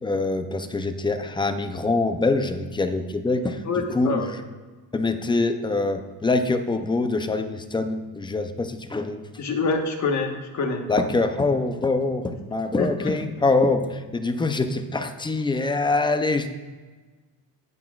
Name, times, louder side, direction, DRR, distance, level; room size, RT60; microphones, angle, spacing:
voice 1, 0.0-4.2 4.9-9.2 10.9-16.5, left 3 dB, 10° left, 8 dB, 0.5 m, -24 dB
voice 2, 3.7-4.3 9.4-10.9 12.8-13.1, left 4 dB, 45° left, 4 dB, 1.3 m, -26 dB
17.5 x 5.9 x 2.4 m, 1.3 s
cardioid pair, 135°, 40 cm